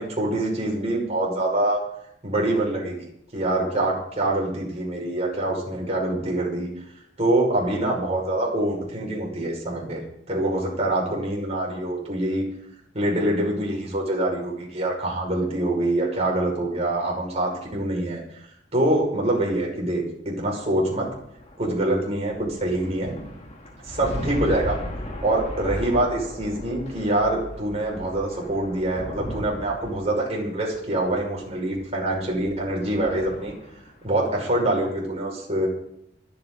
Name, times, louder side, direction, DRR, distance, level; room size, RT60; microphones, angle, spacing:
voice 1, 0.0-1.8 2.2-3.0 3.3-6.7 7.2-10.0 10.3-12.4 12.9-18.2 18.7-21.1 21.6-23.1 23.8-24.8 25.2-33.5 34.0-35.7, right 1 dB, 35° right, -2 dB, 5.7 m, -25 dB
sound 1, 20.8-34.0, equal, 35° left, 2.5 m, -37 dB
26.5 x 9.3 x 4.0 m, 0.75 s
head